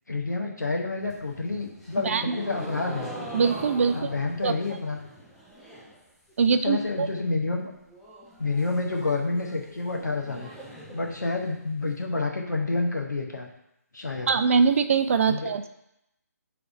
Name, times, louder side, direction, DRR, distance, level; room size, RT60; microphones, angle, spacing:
voice 1, 0.1-3.1 3.9-5.0 6.6-7.7 8.4-10.5 10.9-13.5 13.9-14.4 15.3-15.5, left 3 dB, 90° left, 1 dB, 0.9 m, -29 dB
sound 1, 1.0-6.0 6.3-6.8 7.1-7.2 7.5-7.6 7.9-11.9, right 1 dB, 5° left, 0.6 m, -42 dB
voice 2, 2.0-2.4 3.3-4.1 4.4-4.5 6.4-7.1 14.3-15.7, right 5 dB, 50° right, 10 dB, 0.3 m, -23 dB
6.1 x 3.3 x 2.6 m, 0.83 s
figure-of-eight pair, 150°, 9 cm